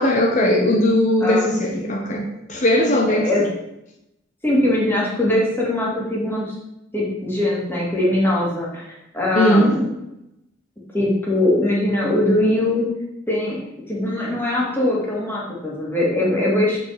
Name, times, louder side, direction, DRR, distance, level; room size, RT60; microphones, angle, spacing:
voice 1, 0.0-3.5 9.3-9.8, left 1 dB, 40° left, 1 dB, 1.0 m, -19 dB
voice 2, 4.4-6.5 6.9-8.9 9.1-9.9 10.9-12.9 13.3-16.8, left 1 dB, 10° left, -5 dB, 2.3 m, -21 dB
7.1 x 5.6 x 4.9 m, 0.87 s
head